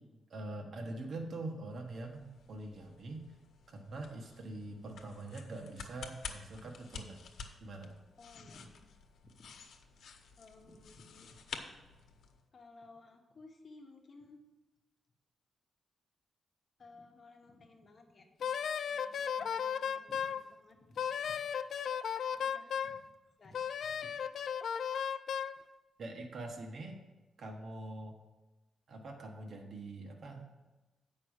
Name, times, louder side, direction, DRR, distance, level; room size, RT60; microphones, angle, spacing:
voice 1, 0.3-3.4 3.7-7.2 7.6-7.9 26.0-27.0 27.4-28.1 28.9-30.5, right 2 dB, 50° right, 1 dB, 1.2 m, -44 dB
sound 1, 1.7-12.4, left 6 dB, 80° left, 0.9 m, -51 dB
voice 2, 8.2-8.9 9.2-9.6 10.4-11.4 11.9-12.0 12.5-14.4 16.8-18.5 18.9-21.3 22.3-22.9 23.4-24.1 24.9-25.1, left 2 dB, 35° left, 2 dB, 1.2 m, -57 dB
Wind instrument woodwind instrument, 18.4-20.4 21.0-23.0 23.5-25.6, left 7 dB, 60° left, 0.3 m, -35 dB
8.4 x 5.5 x 6.5 m, 1.1 s
wide cardioid pair, 150°, 0 cm